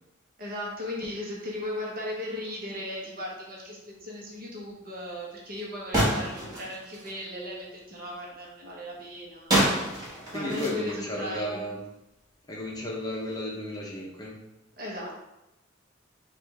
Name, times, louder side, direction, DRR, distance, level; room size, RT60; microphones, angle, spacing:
voice 1, 0.4-9.8 10.3-11.6 14.8-15.2, left 1 dB, 50° right, -3 dB, 1.0 m, -37 dB
sound 1, 5.9-7.2 9.5-11.6, right 1 dB, 20° right, 1.4 m, -28 dB
voice 2, 10.3-11.8 12.5-14.4, left 1 dB, 20° left, -3 dB, 0.7 m, -34 dB
5.0 x 2.5 x 3.2 m, 0.93 s
head